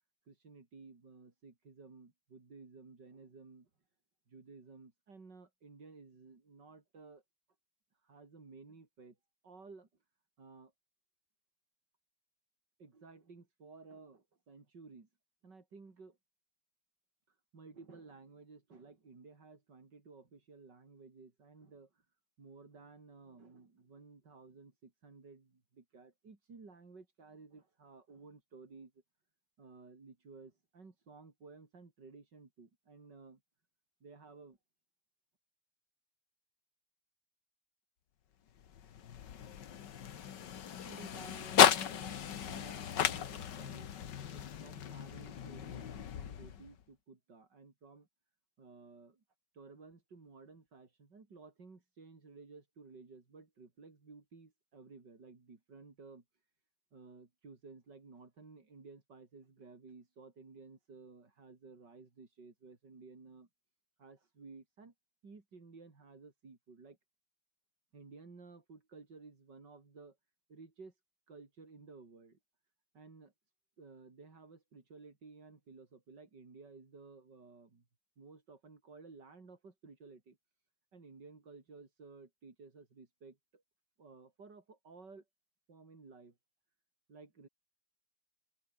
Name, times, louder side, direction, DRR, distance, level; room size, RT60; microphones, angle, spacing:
voice 1, 0.3-3.7 4.3-7.2 8.0-9.2 9.4-9.9 10.4-10.7 12.8-15.1 15.4-16.2 17.5-21.9 22.4-28.9 29.6-33.4 34.0-34.6 40.8-43.9 44.3-48.1 48.6-49.2 49.5-56.2 56.9-63.5 64.0-64.9 65.2-67.0 67.9-70.2 70.5-70.9 71.3-72.4 72.9-73.3 73.8-77.9 78.2-80.4 80.9-83.6 84.0-85.2 85.7-86.4 87.1-87.5, right 4 dB, 80° right, 4.2 m, -55 dB
sound 1, 38.6-46.8, left 9 dB, 85° left, 2.0 m, -33 dB
open air
omnidirectional pair, 1.9 m